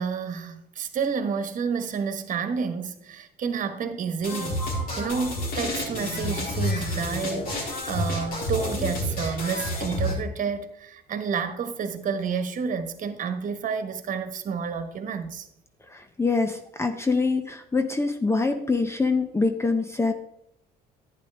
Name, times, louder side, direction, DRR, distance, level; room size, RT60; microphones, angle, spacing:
voice 1, 0.0-4.6 4.9-15.5, right 6 dB, 50° right, 1.4 m, -30 dB
sound 1, 4.2-10.2, left 1 dB, 60° left, 3.9 m, -29 dB
voice 2, 15.9-20.1, left 3 dB, 15° left, 0.7 m, -25 dB
11.5 x 9.4 x 3.5 m
cardioid pair, 110°, 17 cm